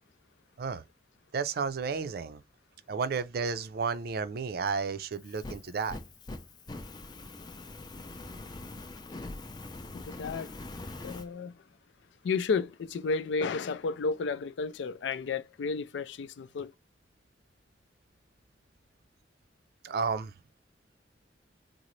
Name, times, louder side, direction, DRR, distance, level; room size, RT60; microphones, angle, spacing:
voice 1, 1.3-2.4 2.9-6.0 19.8-20.3, right 5 dB, 60° right, 0.4 m, -32 dB
Fire, 5.1-11.3, left 2 dB, 25° left, 0.4 m, -43 dB
voice 2, 9.9-10.5 11.0-11.5 12.2-16.7, left 4 dB, 85° left, 0.4 m, -32 dB
3.8 x 2.0 x 3.0 m
head